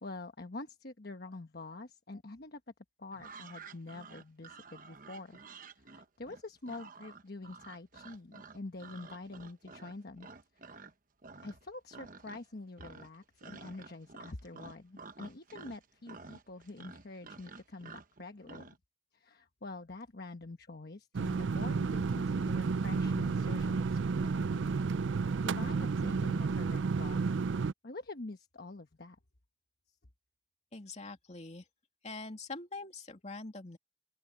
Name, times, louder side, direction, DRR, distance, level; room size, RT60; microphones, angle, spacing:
voice 1, 0.0-2.6 3.0-5.4 5.8-10.3 10.6-10.9 11.4-18.7 19.1-24.6 25.4-27.3 27.8-29.2, left 2 dB, 55° left, 1.2 m, -46 dB
sound 1, 3.1-10.9 11.2-11.7 11.9-12.5 12.8-18.8, right 4 dB, 45° right, 1.0 m, -51 dB
Air Conditioner, 21.1-27.7, right 4 dB, 80° right, 0.5 m, -31 dB
voice 2, 30.7-31.6 32.0-33.8, left 3 dB, 35° left, 2.7 m, -44 dB
open air
head